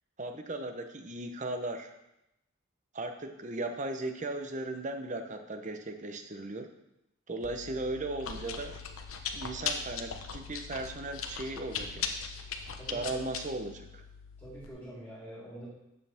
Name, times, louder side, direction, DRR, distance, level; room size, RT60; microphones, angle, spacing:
voice 1, 0.2-1.9 2.9-6.7 7.3-8.8 9.3-12.2 12.9-14.0, right 2 dB, 35° right, 6 dB, 0.8 m, -37 dB
Chewing mastication, 7.4-14.7, left 6 dB, 90° left, 1.0 m, -39 dB
voice 2, 12.8-13.3 14.4-15.7, right 1 dB, 10° left, -11 dB, 4.1 m, -45 dB
11.5 x 8.3 x 3.5 m, 0.87 s
head